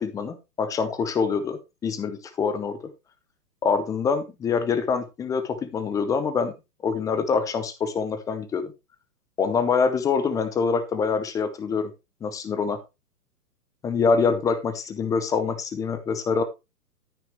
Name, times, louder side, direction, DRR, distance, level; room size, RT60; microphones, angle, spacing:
voice 1, 0.0-1.6 1.8-2.8 3.6-6.5 6.8-8.7 9.4-11.9 12.2-12.8 13.8-16.4, left 5 dB, 5° left, 11 dB, 0.6 m, -25 dB
13.0 x 5.8 x 3.3 m, 0.25 s
hypercardioid pair, 125°, 48 cm